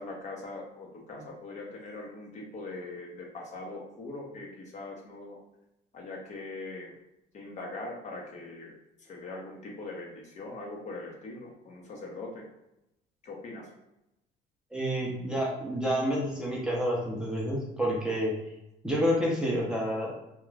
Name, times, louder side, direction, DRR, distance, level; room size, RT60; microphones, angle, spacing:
voice 1, 0.0-5.4 5.9-6.9 7.3-8.7 9.0-12.4 13.2-13.7, left 2 dB, 45° left, -1 dB, 0.8 m, -41 dB
voice 2, 14.7-18.4 18.8-20.1, equal, 5° right, -4 dB, 0.6 m, -29 dB
2.4 x 2.3 x 3.1 m, 0.89 s
cardioid pair, 115°, 17 cm